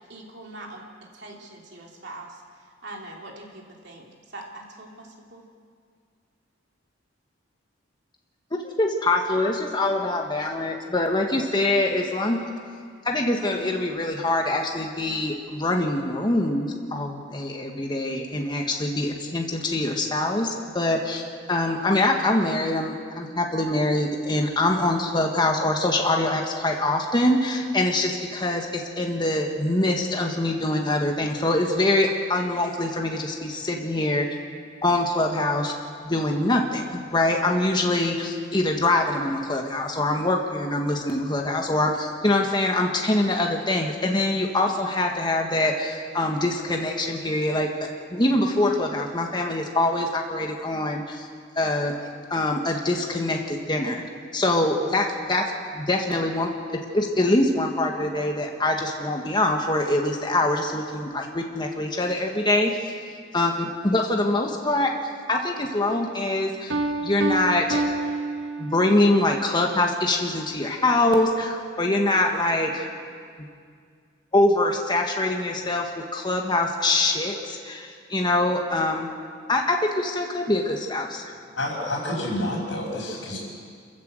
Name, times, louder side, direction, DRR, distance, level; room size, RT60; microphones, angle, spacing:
voice 1, 0.1-0.9 1.1-5.5, right 2 dB, 60° right, 0 dB, 3.2 m, -42 dB
voice 2, 8.6-12.4 13.0-34.3 34.8-35.7 36.0-51.3 51.5-52.0 52.3-54.0 54.3-55.4 55.7-62.8 63.3-64.9 65.3-66.8 67.0-67.9 68.6-72.9 74.3-79.1 79.5-81.3, left 2 dB, 25° left, 2 dB, 1.6 m, -24 dB
Piano, 66.7-69.2, right 2 dB, 80° right, 1.5 m, -28 dB
voice 3, 81.5-83.4, left 1 dB, 90° left, -6 dB, 5.5 m, -28 dB
26.5 x 14.5 x 7.7 m, 2.1 s
head